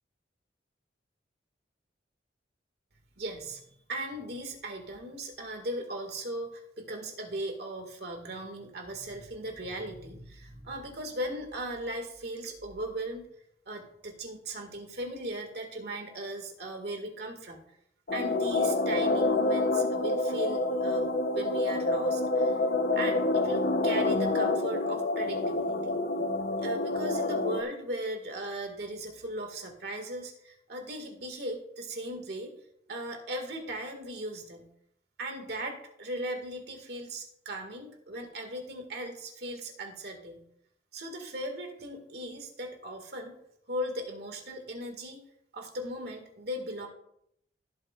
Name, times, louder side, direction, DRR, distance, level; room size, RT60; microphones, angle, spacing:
voice 1, 3.2-13.3 13.7-17.6 18.1-22.6 22.9-25.9 26.6-32.5 32.9-34.7 35.2-40.5 40.9-43.4 43.7-45.2 45.5-46.9, right 1 dB, 60° right, 4 dB, 1.9 m, -38 dB
sound 1, 18.1-27.6, left 2 dB, 55° left, 0.7 m, -27 dB
16.0 x 7.5 x 2.4 m, 0.74 s
head